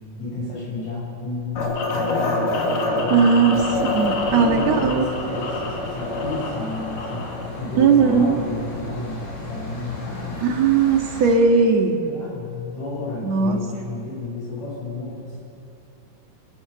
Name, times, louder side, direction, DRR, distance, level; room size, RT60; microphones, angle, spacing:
voice 1, 0.2-3.6 4.3-7.3 7.6-10.5 12.0-15.4, left 2 dB, 60° left, -6 dB, 8.9 m, -32 dB
sound 1, 1.6-7.5, left 2 dB, 85° left, 4.1 m, -26 dB
voice 2, 3.1-3.6 3.9-5.0 7.8-8.4 10.4-12.0 13.2-13.6, right 5 dB, 60° right, 3 dB, 2.8 m, -18 dB
sound 2, 3.5-11.3, left 2 dB, 20° left, 6.3 m, -35 dB
28.0 x 18.0 x 7.0 m, 2.6 s
omnidirectional pair, 3.7 m